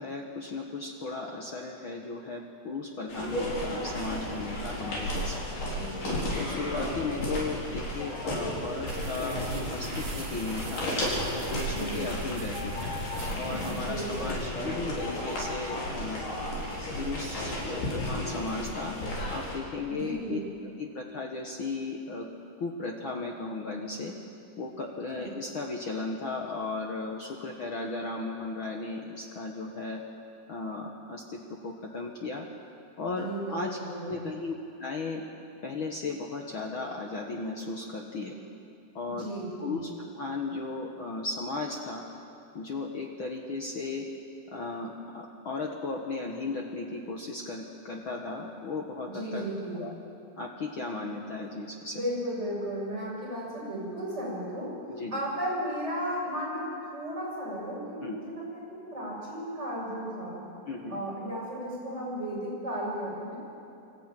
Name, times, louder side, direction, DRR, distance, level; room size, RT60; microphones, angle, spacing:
voice 1, 0.0-5.5 6.4-9.4 9.7-10.9 11.3-12.9 13.4-16.2 17.0-18.9 19.3-20.4 20.8-22.3 22.6-24.1 24.6-30.0 30.5-32.4 33.0-33.8 34.0-34.5 34.8-35.2 35.6-38.4 38.9-39.3 39.6-39.9 40.1-42.0 42.5-44.0 44.5-49.4 49.7-49.9 50.4-52.0 54.9-55.2 58.0-58.2 60.7-61.0, left 3 dB, 75° left, 1 dB, 1.1 m, -35 dB
sound 1, 3.1-19.5, left 1 dB, 60° left, 5.6 m, -33 dB
voice 2, 5.7-6.2 11.7-12.0 13.8-14.4 19.9-20.5 25.2-25.3 33.1-34.3 39.1-39.8 49.1-49.8 51.9-54.7 55.1-60.4 60.9-63.4, equal, 15° right, -5 dB, 7.1 m, -35 dB
sound 2, 8.9-14.5, right 3 dB, 55° right, 2.2 m, -41 dB
sound 3, 12.5-13.3 14.9-15.9, left 4 dB, 30° left, 2.4 m, -41 dB
25.0 x 14.0 x 9.0 m, 2.7 s
omnidirectional pair, 4.3 m